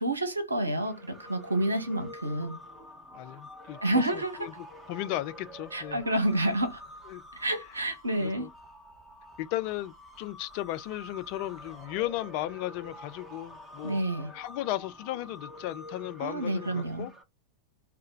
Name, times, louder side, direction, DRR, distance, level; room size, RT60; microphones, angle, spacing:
voice 1, 0.0-2.6 3.8-4.4 5.7-6.8 7.3-8.5 13.8-14.3 16.2-17.1, right 1 dB, 80° right, 0.7 m, -29 dB
sound 1, 0.7-17.2, left 1 dB, 10° right, 0.8 m, -48 dB
voice 2, 3.1-6.0 7.1-7.2 8.2-8.5 9.4-14.0 14.3-17.1, left 15 dB, 45° left, 0.3 m, -35 dB
2.2 x 2.0 x 3.7 m
figure-of-eight pair, 90°, 0 cm